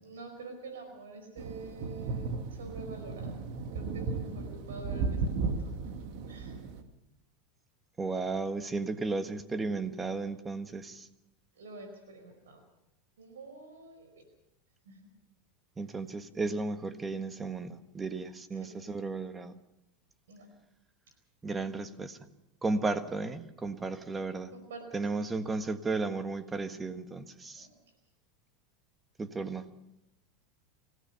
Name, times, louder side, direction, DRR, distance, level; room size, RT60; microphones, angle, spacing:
voice 1, 0.0-3.3 3.7-5.6 6.3-6.5 11.5-12.6 13.2-14.2 14.8-15.0 18.5-18.7 20.3-20.5 24.5-25.0 27.6-27.8, right 3 dB, 90° right, 6 dB, 4.7 m, -47 dB
sound 1, 1.4-6.8, right 4 dB, 65° right, 2.2 m, -35 dB
voice 2, 8.0-11.1 15.8-19.5 21.4-22.2 22.6-24.5 24.9-27.7 29.2-29.7, right 3 dB, 15° right, 10 dB, 1.5 m, -34 dB
24.5 x 16.5 x 6.9 m, 0.88 s
hypercardioid pair, 105°, 0 cm